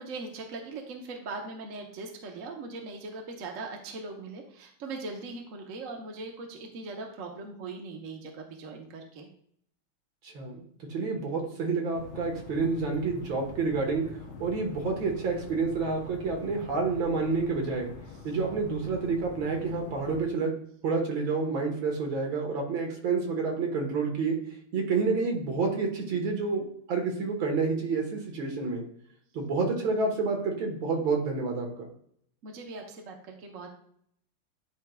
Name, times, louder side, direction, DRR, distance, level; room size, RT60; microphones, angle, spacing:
voice 1, 0.0-9.3 32.4-33.7, right 3 dB, 50° right, 2 dB, 1.0 m, -40 dB
voice 2, 10.2-10.6 10.9-14.1 14.4-17.9 18.2-20.5 20.8-24.4 24.7-26.6 26.9-28.8 29.3-31.7, right 4 dB, 65° right, 0 dB, 2.1 m, -29 dB
sound 1, 11.9-20.2, left 5 dB, 70° left, 0.7 m, -45 dB
10.5 x 4.5 x 2.3 m, 0.67 s
omnidirectional pair, 2.4 m